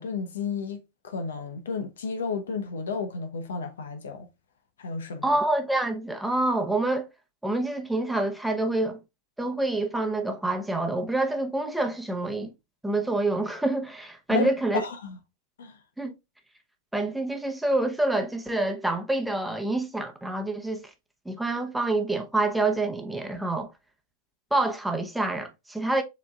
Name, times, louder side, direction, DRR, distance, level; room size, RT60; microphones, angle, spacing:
voice 1, 0.0-4.3 4.8-5.3 14.3-14.5 14.7-15.2 15.6-15.8, left 5 dB, 80° left, 0.8 m, -32 dB
voice 2, 5.2-7.1 7.4-9.0 9.4-12.5 12.8-14.8 16.0-16.1 16.9-20.9 21.3-23.7 24.5-26.0, right 2 dB, 5° right, 0.8 m, -27 dB
6.9 x 3.1 x 2.3 m
hypercardioid pair, 105°, 0 cm